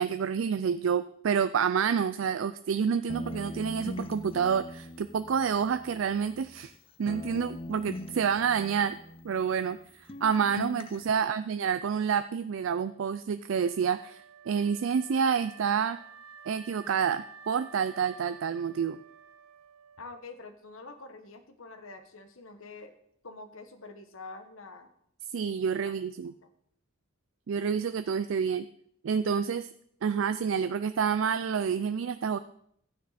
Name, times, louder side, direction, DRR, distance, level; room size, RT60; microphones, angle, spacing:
voice 1, 0.0-6.7 7.0-9.0 9.2-16.0 16.5-19.0 25.3-26.3 27.5-28.7 29.0-29.7 30.0-32.4, right 7 dB, 70° right, 11 dB, 0.4 m, -28 dB
sound 1, 3.1-6.8 7.1-9.8 10.1-11.1, left 2 dB, 25° left, 0.6 m, -42 dB
Wind instrument woodwind instrument, 13.6-20.6, right 7 dB, 90° right, 0.8 m, -51 dB
voice 2, 20.0-23.0 23.2-24.9 25.8-26.0 26.4-26.5, left 3 dB, 80° left, 8 dB, 1.3 m, -46 dB
12.5 x 9.5 x 4.2 m, 0.70 s
head